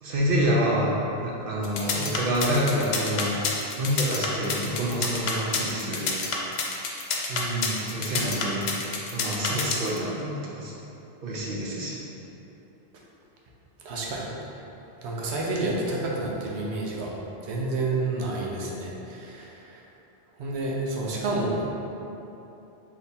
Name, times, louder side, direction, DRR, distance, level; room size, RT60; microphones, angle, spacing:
voice 1, 0.0-3.4 3.8-6.1 7.9-8.7 9.1-10.7 11.2-12.0, equal, 65° right, -4 dB, 0.7 m, -27 dB
sound 1, 1.6-10.0, left 5 dB, 75° left, 0.8 m, -28 dB
voice 2, 7.3-7.9 13.8-14.3 15.0-17.1 17.4-19.8 20.4-21.6, right 2 dB, 90° right, -3 dB, 0.9 m, -29 dB
3.4 x 2.9 x 4.1 m, 3.0 s
omnidirectional pair, 1.1 m